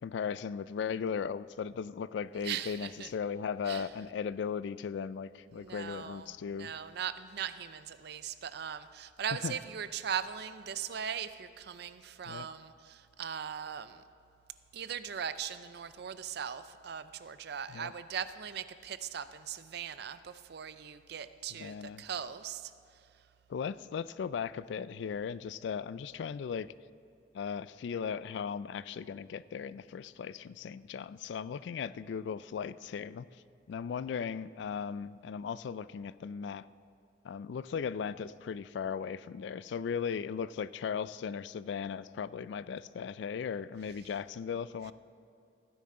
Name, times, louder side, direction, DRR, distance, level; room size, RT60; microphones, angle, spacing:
voice 1, 0.0-6.7 9.4-9.5 12.3-12.5 17.7-17.9 21.6-22.0 23.5-26.7 27.3-33.3 33.7-36.7 37.2-44.9, left 6 dB, 65° left, 17 dB, 0.3 m, -37 dB
voice 2, 2.3-3.1 3.7-3.9 5.5-14.0 14.7-23.3, right 8 dB, 60° right, 13 dB, 0.5 m, -39 dB
16.0 x 10.0 x 3.7 m, 2.5 s
head